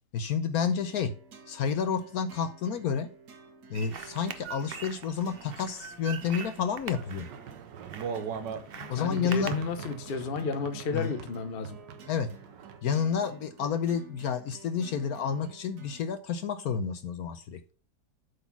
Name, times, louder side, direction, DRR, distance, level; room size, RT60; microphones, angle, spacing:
voice 1, 0.1-1.1 1.5-3.1 3.7-7.3 8.9-9.6 10.9-11.1 12.1-12.3 12.8-17.6, left 6 dB, 65° left, 1.1 m, -30 dB
sound 1, 0.6-16.1, right 6 dB, 65° right, 1.7 m, -52 dB
sound 2, 3.7-10.0, right 6 dB, 50° right, 0.7 m, -43 dB
sound 3, 7.0-12.8, right 6 dB, 85° right, 1.5 m, -41 dB
voice 2, 8.7-11.8, left 4 dB, 45° left, 0.8 m, -32 dB
8.0 x 4.1 x 5.9 m
omnidirectional pair, 1.8 m